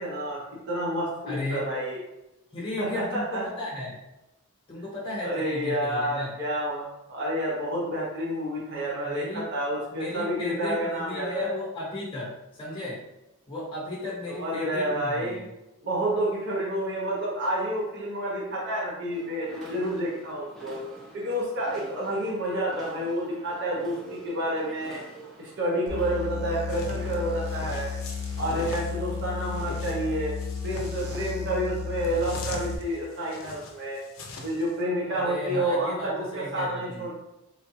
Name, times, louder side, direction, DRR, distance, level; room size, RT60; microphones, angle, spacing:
voice 1, 0.0-2.0 2.8-3.5 5.2-11.5 14.3-15.4 15.8-20.8 21.1-25.0 25.4-27.9 28.4-30.3 30.6-34.0 34.4-37.2, right 1 dB, 50° right, -5 dB, 0.7 m, -29 dB
voice 2, 1.3-1.7 2.5-4.0 4.7-6.4 9.0-9.5 9.9-13.0 13.5-15.5 35.1-37.1, left 2 dB, 20° left, -6 dB, 0.9 m, -35 dB
sound 1, 19.1-27.8, right 2 dB, ahead, 0.4 m, -47 dB
sound 2, 25.9-32.7, left 6 dB, 85° right, 0.6 m, -33 dB
sound 3, 26.7-34.8, left 2 dB, 65° left, 0.5 m, -42 dB
3.8 x 2.2 x 3.0 m, 0.96 s
head